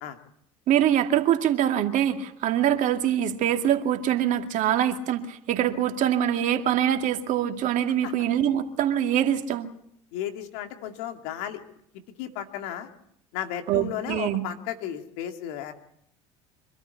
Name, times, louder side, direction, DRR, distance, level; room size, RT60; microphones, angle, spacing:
voice 1, 0.7-9.7 13.7-14.4, right 10 dB, 55° right, 6 dB, 2.2 m, -24 dB
voice 2, 10.1-11.6 12.2-12.9 13.3-15.7, left 10 dB, 70° left, 6 dB, 2.4 m, -34 dB
25.0 x 13.5 x 8.3 m, 0.71 s
hypercardioid pair, 85°, 16 cm